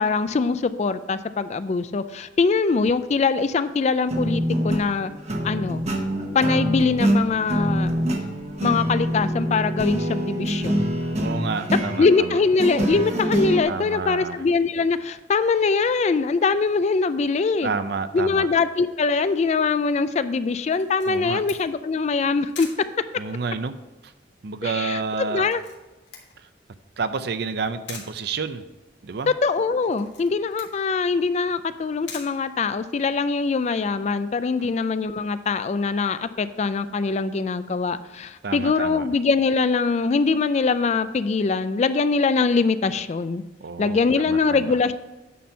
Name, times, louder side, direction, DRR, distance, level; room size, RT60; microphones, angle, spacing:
voice 1, 0.0-5.1 5.4-5.8 6.3-7.9 8.6-10.9 12.0-17.7 18.1-22.7 24.6-25.6 29.3-43.4 43.8-44.9, left 4 dB, 35° left, 13 dB, 0.3 m, -22 dB
sound 1, 4.1-13.6, equal, 35° right, 1.0 m, -25 dB
voice 2, 11.2-12.4 13.6-14.4 17.6-18.5 21.1-21.4 23.2-23.8 24.0-24.1 24.4-25.4 27.0-28.6 29.0-29.3 34.6-34.7 38.4-39.1 43.6-44.0 44.3-44.8, right 4 dB, 60° right, 11 dB, 0.5 m, -29 dB
Camera, 20.7-33.2, left 5 dB, 85° left, 1.8 m, -46 dB
9.3 x 4.3 x 5.6 m, 1.1 s
head